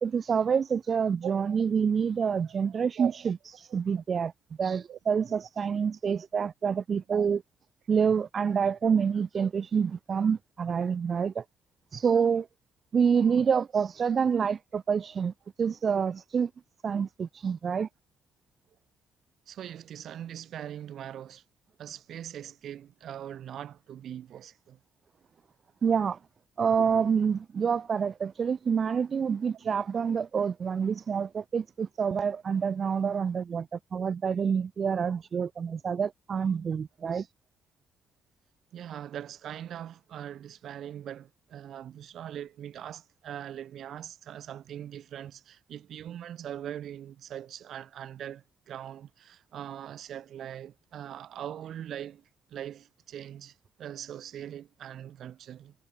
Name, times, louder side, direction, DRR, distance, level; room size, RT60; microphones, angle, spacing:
voice 1, 0.0-4.3 4.6-7.4 7.9-11.4 11.9-12.5 12.9-16.5 16.8-17.9 25.8-26.2 26.6-37.3, right 6 dB, 35° right, 0.6 m, -27 dB
voice 2, 2.4-3.3 3.7-3.8 4.9-5.0 5.6-5.7 7.1-7.3 19.5-21.4 21.8-24.8 29.7-29.8 38.7-55.7, right 10 dB, 60° right, 5.2 m, -41 dB
cardioid pair, 155°, 0 cm